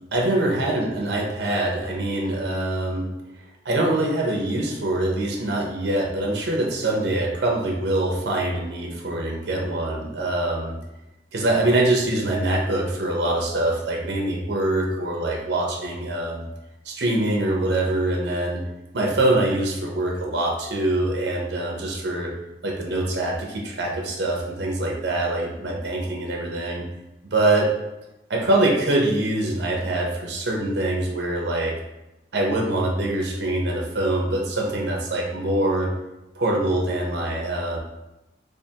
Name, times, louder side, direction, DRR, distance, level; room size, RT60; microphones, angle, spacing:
voice 1, 0.1-3.1 3.6-10.7 11.3-16.4 16.8-18.6 18.9-22.3 22.6-26.8 27.3-27.7 28.3-31.7 32.3-35.9 36.4-37.8, right 1 dB, 75° right, -1 dB, 0.7 m, -24 dB
3.4 x 3.3 x 2.8 m, 0.97 s
head